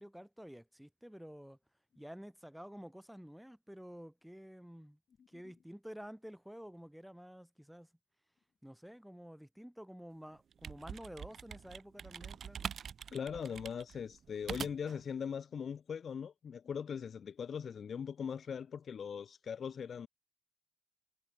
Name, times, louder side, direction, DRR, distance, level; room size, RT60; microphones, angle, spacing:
voice 1, 0.0-1.6 2.0-5.0 5.3-7.9 8.6-12.7, equal, ahead, 6.8 m, -50 dB
sound 1, 10.3-15.0, right 7 dB, 55° right, 3.7 m, -45 dB
voice 2, 13.1-20.1, left 7 dB, 50° left, 0.5 m, -40 dB
cardioid pair, 90°, 0 cm